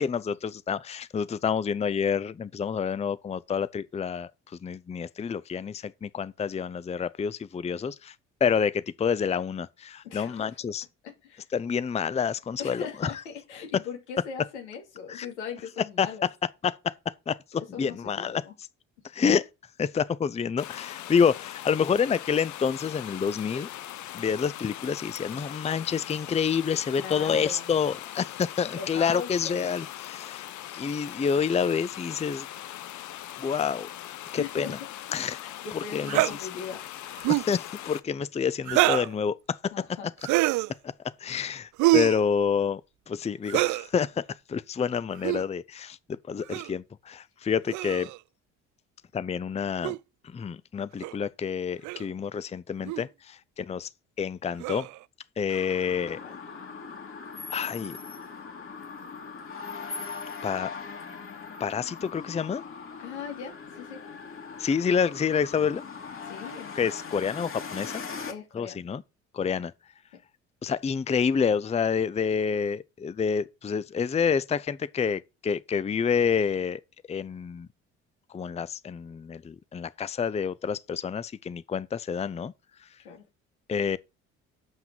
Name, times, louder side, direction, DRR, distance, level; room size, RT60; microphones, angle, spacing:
voice 1, 0.0-4.3 4.6-8.1 8.4-10.8 11.5-13.1 15.1-15.3 16.0-16.3 16.6-16.9 17.3-18.4 19.1-19.5 19.8-23.7 24.1-30.4 30.7-32.5 33.4-33.9 34.3-34.8 35.1-35.4 35.9-36.4 37.3-39.7 41.2-42.8 43.1-44.2 44.5-48.1 49.1-50.0 50.2-53.9 54.2-54.9 55.4-56.2 57.5-58.0 60.4-60.7 61.6-62.6 64.6-65.8 66.7-68.0 68.5-69.0 69.3-69.7 70.6-76.8 77.1-77.7 78.3-82.5 83.7-84.0, left 6 dB, 20° left, 0.5 m, -28 dB
voice 2, 10.0-10.6 11.0-11.5 12.6-16.3 17.7-18.5 27.0-27.7 28.7-29.8 34.4-34.7 35.4-36.8 37.1-37.3 39.7-40.1 56.2-56.4 63.0-64.0 66.2-66.7 68.3-68.8 83.0-83.2, left 6 dB, 90° left, 2.7 m, -39 dB
sound 1, 20.6-38.0, left 13 dB, 60° left, 0.8 m, -41 dB
sound 2, 36.1-36.3 37.2-37.5 38.7-39.1 40.2-40.7 41.8-42.2 43.5-43.9 45.2-45.4 46.5-46.7 47.7-48.2 49.8-50.0 51.0-51.1 51.8-52.1 52.9-53.0 54.6-55.0, right 19 dB, 60° right, 0.5 m, -25 dB
sound 3, 55.5-68.3, left 5 dB, 40° left, 2.3 m, -40 dB
7.2 x 5.8 x 6.1 m
hypercardioid pair, 55°, 34 cm